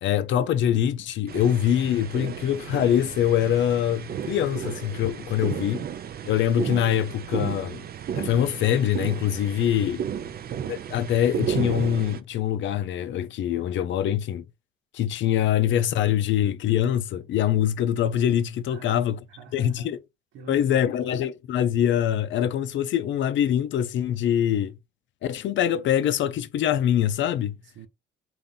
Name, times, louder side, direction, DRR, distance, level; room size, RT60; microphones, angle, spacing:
voice 1, 0.0-5.8 6.3-7.8 8.1-10.0 10.7-14.4 14.9-19.2 19.5-20.0 20.5-24.7 25.2-27.6, left 10 dB, 70° left, 0.5 m, -24 dB
sound 1, 1.3-12.2, right 8 dB, 50° right, 0.5 m, -33 dB
voice 2, 10.1-10.5 18.7-20.0 20.3-21.1 27.6-27.9, right 5 dB, 85° right, 1.0 m, -46 dB
3.9 x 2.6 x 3.8 m
cardioid pair, 90°, 20 cm